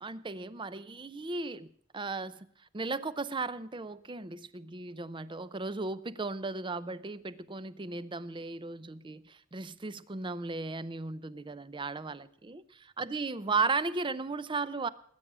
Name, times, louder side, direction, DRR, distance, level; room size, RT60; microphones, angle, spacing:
voice 1, 0.0-2.5 2.7-14.9, right 3 dB, 25° right, 16 dB, 0.6 m, -36 dB
20.0 x 8.8 x 6.1 m, 0.64 s
head